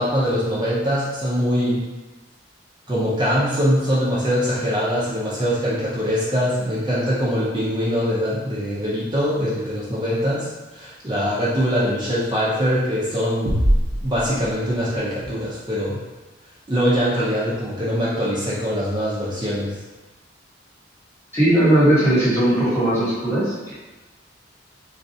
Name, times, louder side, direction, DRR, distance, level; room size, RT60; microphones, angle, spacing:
voice 1, 0.0-1.8 2.9-13.6 14.0-16.0 16.7-19.8, equal, 25° right, -8 dB, 0.5 m, -22 dB
sound 1, 13.4-15.2, equal, 80° right, 0.6 m, -23 dB
voice 2, 21.3-23.7, right 1 dB, 15° left, -9 dB, 1.1 m, -18 dB
4.0 x 2.3 x 2.7 m, 1.2 s
head